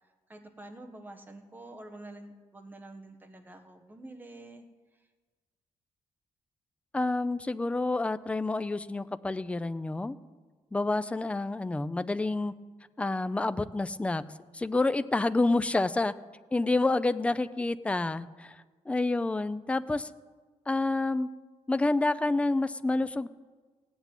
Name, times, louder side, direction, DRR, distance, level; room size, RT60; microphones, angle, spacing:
voice 1, 0.3-4.6, right 2 dB, 15° right, 5 dB, 1.4 m, -47 dB
voice 2, 6.9-10.2 10.7-12.5 13.0-14.2 14.5-16.1 16.5-20.1 20.7-21.3 21.7-23.3, left 2 dB, 10° left, 14 dB, 0.4 m, -28 dB
16.5 x 8.2 x 9.0 m, 1.4 s
cardioid pair, 145°, 11 cm